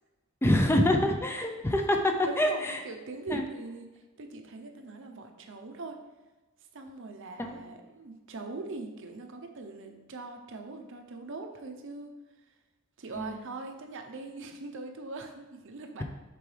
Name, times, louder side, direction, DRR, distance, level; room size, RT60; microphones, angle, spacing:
voice 1, 0.4-2.8 3.3-3.4 7.4-7.6 13.1-13.4, left 1 dB, 10° left, 4 dB, 0.4 m, -26 dB
voice 2, 2.1-3.9 4.2-6.0 6.7-12.1 13.0-16.0, right 3 dB, 65° right, 5 dB, 0.7 m, -41 dB
6.8 x 4.5 x 3.3 m, 1.2 s
head